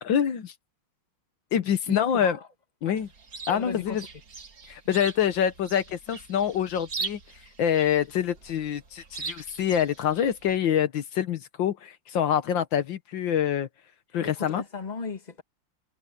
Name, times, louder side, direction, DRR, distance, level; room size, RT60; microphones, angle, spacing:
voice 1, 0.0-0.5 1.5-2.4 2.8-3.1 3.5-4.0 4.7-7.2 7.6-13.7 14.1-14.6, left 9 dB, 80° left, 1.8 m, -26 dB
voice 2, 1.9-2.5 2.9-3.0 3.5-4.1 14.2-15.4, left 4 dB, 20° left, 1.9 m, -36 dB
Chirp tweet, 3.0-10.6, right 5 dB, 50° right, 2.2 m, -41 dB
omnidirectional pair, 2.1 m